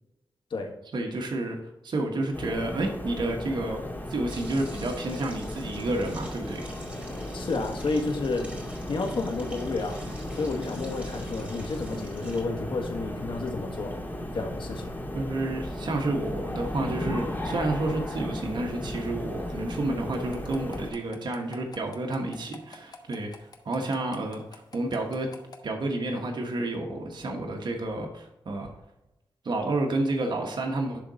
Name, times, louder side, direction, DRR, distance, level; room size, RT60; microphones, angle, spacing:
voice 1, 0.9-1.6 1.8-3.8 4.1-6.7 15.1-25.3 25.6-28.7 29.4-31.0, right 2 dB, 65° right, 1 dB, 1.3 m, -30 dB
sound 1, 2.3-20.9, left 1 dB, 25° left, 2.2 m, -35 dB
sound 2, 4.3-12.4, right 1 dB, 15° right, 2.7 m, -48 dB
voice 2, 7.3-8.6 8.9-10.0 10.3-14.0 14.3-14.8, left 3 dB, 75° left, 3 dB, 1.6 m, -30 dB
sound 3, 20.1-25.6, left 4 dB, 50° left, 1.2 m, -46 dB
11.0 x 3.9 x 4.1 m, 0.92 s
cardioid pair, 75°, 8 cm